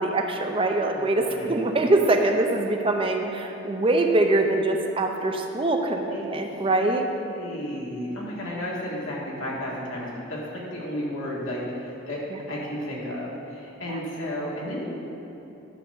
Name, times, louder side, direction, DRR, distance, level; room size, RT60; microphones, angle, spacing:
voice 1, 0.0-7.1 13.9-14.0, right 2 dB, 30° right, 4 dB, 0.6 m, -23 dB
voice 2, 6.1-14.9, left 1 dB, 90° left, -5 dB, 2.0 m, -33 dB
11.0 x 4.0 x 6.7 m, 2.9 s
head